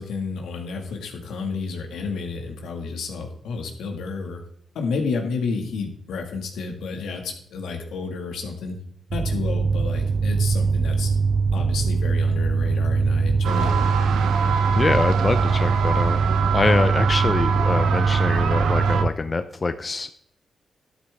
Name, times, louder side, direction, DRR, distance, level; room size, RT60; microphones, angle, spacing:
voice 1, 0.0-4.4 4.7-8.8 9.1-11.1 11.5-13.7, left 4 dB, 85° left, 3 dB, 2.0 m, -30 dB
sound 1, 9.1-19.1, right 5 dB, 45° right, 0.6 m, -22 dB
sound 2, 13.4-19.0, right 6 dB, 90° right, 0.9 m, -26 dB
voice 2, 14.7-16.2 16.5-20.1, left 3 dB, 40° left, 10 dB, 0.7 m, -24 dB
12.0 x 8.6 x 3.6 m, 0.65 s
cardioid pair, 65°, 0 cm